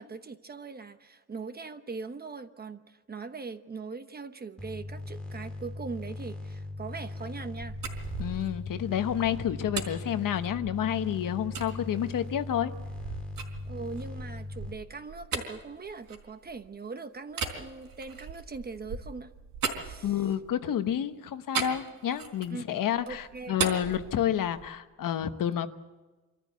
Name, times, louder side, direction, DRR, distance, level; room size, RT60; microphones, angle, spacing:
voice 1, 0.0-7.8 13.7-19.3 19.8-20.3 22.5-23.5, right 4 dB, 25° right, 9 dB, 1.0 m, -41 dB
sound 1, 4.6-14.7, left 2 dB, 5° left, 2.7 m, -39 dB
sound 2, 7.6-10.9 11.5-11.7 12.3-16.7 17.3-20.5 21.5-22.6 23.0-24.8, right 6 dB, 70° right, 4.3 m, -38 dB
voice 2, 8.2-12.7 20.0-25.7, left 10 dB, 60° left, 10 dB, 1.1 m, -29 dB
25.5 x 14.0 x 8.2 m, 1.2 s
cardioid pair, 140°, 37 cm